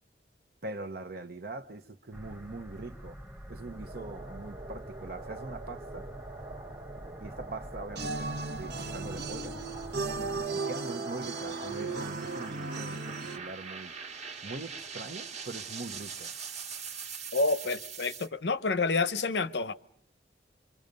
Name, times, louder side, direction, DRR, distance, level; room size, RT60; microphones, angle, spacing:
voice 1, 0.6-3.2 3.5-6.1 7.2-9.5 10.2-13.9 14.4-16.3, right 2 dB, 60° right, 1.0 m, -42 dB
sound 1, 2.1-10.5, equal, 10° right, 1.1 m, -46 dB
sound 2, 3.7-18.3, right 4 dB, 40° right, 1.5 m, -44 dB
sound 3, 8.0-13.4, right 3 dB, 75° right, 1.2 m, -36 dB
voice 2, 17.3-19.7, left 3 dB, 70° left, 0.9 m, -28 dB
28.0 x 24.0 x 5.3 m
head